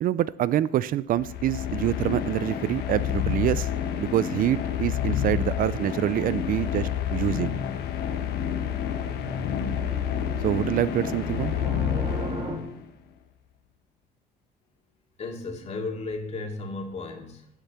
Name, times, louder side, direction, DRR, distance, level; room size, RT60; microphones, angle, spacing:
voice 1, 0.0-3.7 4.0-7.5 10.4-11.5, right 12 dB, 55° right, 18 dB, 0.4 m, -26 dB
sound 1, 1.1-12.8, left 9 dB, 75° left, 1.3 m, -29 dB
sound 2, 7.5-12.6, right 1 dB, 35° right, 2.6 m, -37 dB
voice 2, 15.2-17.5, left 3 dB, 40° left, 1 dB, 2.6 m, -34 dB
12.0 x 7.4 x 6.8 m, 0.79 s
cardioid pair, 110°, 17 cm